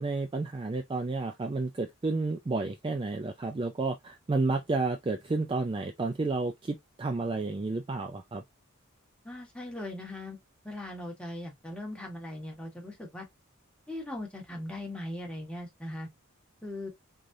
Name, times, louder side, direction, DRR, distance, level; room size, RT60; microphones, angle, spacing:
voice 1, 0.0-8.4, right 3 dB, 25° right, 0.3 m, -31 dB
voice 2, 9.2-10.4 10.6-13.3 13.9-16.1 16.6-16.9, left 1 dB, 5° left, 1.3 m, -39 dB
3.8 x 3.2 x 2.6 m
head